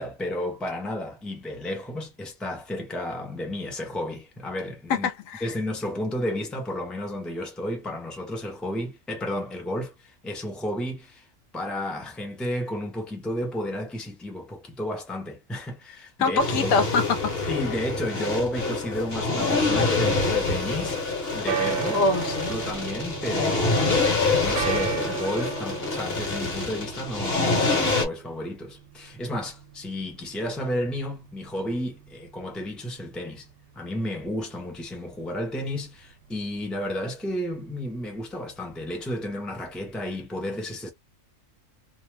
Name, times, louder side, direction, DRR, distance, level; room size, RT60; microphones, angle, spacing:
voice 1, 0.0-5.1 5.4-11.2 11.5-16.7 17.5-21.0 21.3-22.2 22.5-33.4 33.7-40.9, left 1 dB, ahead, 0.6 m, -32 dB
voice 2, 4.9-5.5 16.2-17.5 21.9-22.6, left 4 dB, 75° left, 1.0 m, -24 dB
sound 1, 16.4-28.1, left 3 dB, 50° left, 1.2 m, -26 dB
sound 2, 21.5-40.2, right 9 dB, 70° right, 0.9 m, -38 dB
2.6 x 2.0 x 3.2 m
omnidirectional pair, 1.4 m